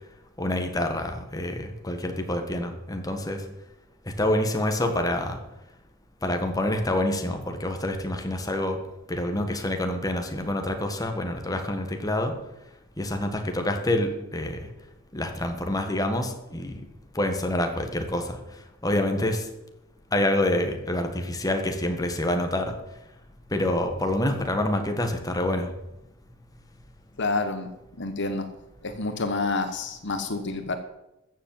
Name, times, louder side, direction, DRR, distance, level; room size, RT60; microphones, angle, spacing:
voice 1, 0.4-3.4 4.0-5.4 6.2-8.8 9.1-12.3 13.0-14.7 15.1-16.8 17.1-18.4 18.8-19.5 20.1-22.8 23.5-25.7, left 1 dB, 20° left, 5 dB, 1.5 m, -27 dB
voice 2, 27.2-27.7 28.0-28.5 28.8-30.8, left 3 dB, 60° left, 8 dB, 1.2 m, -28 dB
14.0 x 7.4 x 7.7 m, 0.93 s
head